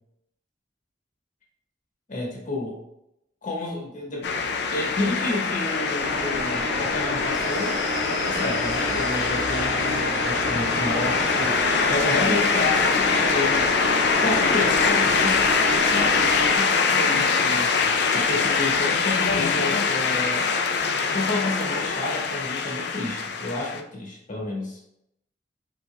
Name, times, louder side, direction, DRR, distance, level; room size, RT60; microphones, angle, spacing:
voice 1, 2.1-2.8 3.4-4.3 4.7-7.8 8.3-13.6 14.1-17.8 18.1-20.5 21.1-24.8, left 2 dB, 50° left, -3 dB, 1.2 m, -30 dB
sound 1, 4.2-23.8, left 5 dB, 65° left, 0.4 m, -23 dB
sound 2, 6.0-16.6, right 1 dB, 70° right, 0.9 m, -30 dB
4.9 x 4.1 x 2.2 m, 0.80 s
head